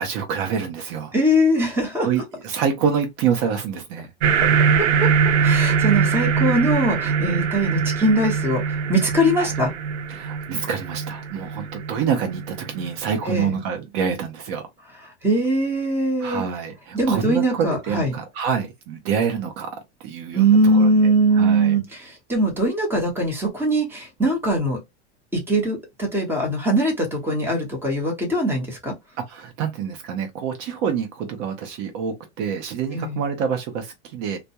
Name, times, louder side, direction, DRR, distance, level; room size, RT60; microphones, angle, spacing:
voice 1, 0.0-1.1 2.0-4.1 9.4-9.5 10.1-14.6 16.2-19.7 20.0-21.8 29.3-34.4, right 7 dB, 55° right, 0.7 m, -27 dB
voice 2, 1.1-2.1 5.0-5.1 5.4-9.7 13.2-13.6 15.2-16.4 16.9-18.1 20.3-24.8 25.3-28.9 32.9-33.2, right 1 dB, 5° right, 0.9 m, -21 dB
sound 1, 4.2-13.2, right 6 dB, 90° right, 0.6 m, -22 dB
2.2 x 2.1 x 2.7 m
supercardioid pair, 125°, 34 cm